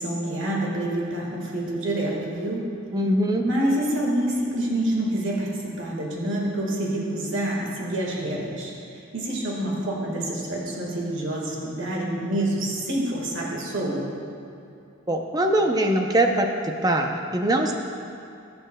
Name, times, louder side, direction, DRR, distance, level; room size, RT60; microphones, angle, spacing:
voice 1, 0.0-2.7 3.4-14.0, right 1 dB, 60° right, -3 dB, 1.6 m, -27 dB
voice 2, 2.9-3.4 15.1-17.7, right 1 dB, 15° right, 3 dB, 0.6 m, -22 dB
20.5 x 6.9 x 2.2 m, 2.6 s
head